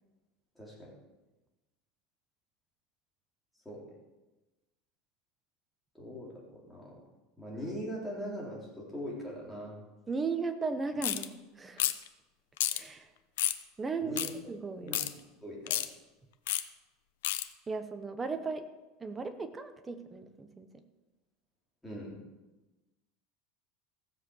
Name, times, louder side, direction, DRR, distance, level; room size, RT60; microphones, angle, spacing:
voice 1, 0.6-0.9 3.7-3.8 5.9-7.0 7.4-9.8 14.0-14.3 14.8-15.0 15.4-15.8 21.8-22.2, equal, 5° left, -5 dB, 3.8 m, -41 dB
voice 2, 10.1-11.3 11.5-11.9 12.7-13.1 13.8-14.2 14.5-15.0 17.7-18.6 19.0-20.7, right 4 dB, 15° right, 9 dB, 0.9 m, -36 dB
sound 1, 11.0-11.3 11.8-12.1 12.6-12.8 13.4-13.6 14.2-14.3 14.9-15.1 15.7-15.9 16.5-16.6 17.2-17.4, left 13 dB, 90° left, 0.8 m, -30 dB
15.5 x 7.4 x 6.4 m, 1.1 s
supercardioid pair, 155°, 0 cm